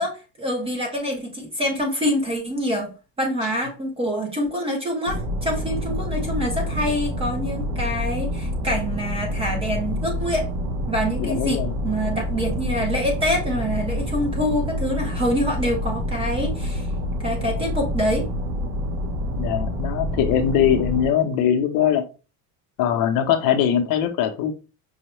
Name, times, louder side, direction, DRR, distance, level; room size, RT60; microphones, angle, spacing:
voice 1, 0.0-2.9 3.2-10.5 10.9-16.9 17.2-18.3, equal, 15° right, 1 dB, 0.5 m, -26 dB
sound 1, 5.1-21.1, left 1 dB, 65° right, 0.8 m, -27 dB
voice 2, 11.2-11.7 19.4-22.0 22.8-24.5, left 9 dB, 55° left, 6 dB, 0.6 m, -21 dB
5.4 x 2.1 x 3.0 m, 0.31 s
cardioid pair, 170°, 42 cm